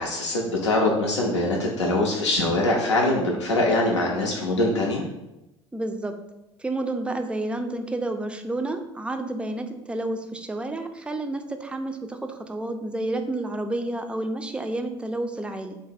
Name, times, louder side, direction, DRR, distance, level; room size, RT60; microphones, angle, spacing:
voice 1, 0.0-5.0, left 2 dB, 90° left, -2 dB, 0.5 m, -23 dB
voice 2, 5.7-6.1 6.6-15.8, right 2 dB, 5° right, 6 dB, 0.4 m, -30 dB
3.2 x 2.0 x 4.1 m, 0.92 s
hypercardioid pair, 65°, 14 cm